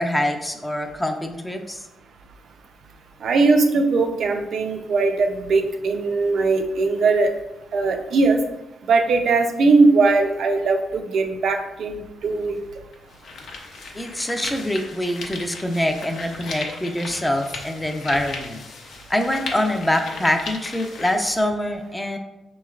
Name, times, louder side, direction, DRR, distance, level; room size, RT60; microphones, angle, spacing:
voice 1, 0.0-1.9 13.9-18.6 19.1-22.2, left 1 dB, 10° left, 5 dB, 0.4 m, -24 dB
voice 2, 3.2-7.3 7.7-8.4 8.9-12.6, right 3 dB, 65° right, 5 dB, 0.5 m, -19 dB
sound 1, 12.2-12.3 12.9-21.4, left 3 dB, 70° left, 0.6 m, -36 dB
5.7 x 3.1 x 2.4 m, 0.93 s
cardioid pair, 125°, 0 cm